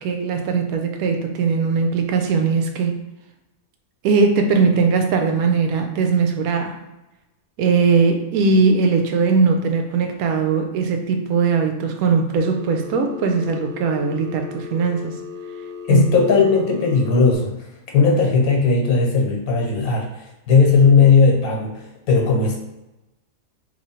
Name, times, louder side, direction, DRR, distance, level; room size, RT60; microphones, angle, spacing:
voice 1, 0.0-2.9 4.0-6.8 7.6-15.1 15.9-16.0, right 5 dB, 85° right, 4 dB, 1.0 m, -19 dB
Telephone, 12.4-17.4, left 5 dB, 60° right, 0.5 m, -36 dB
voice 2, 15.9-17.5 17.9-22.6, left 4 dB, 85° left, -1 dB, 1.3 m, -17 dB
3.1 x 2.6 x 4.2 m, 0.99 s
omnidirectional pair, 1.5 m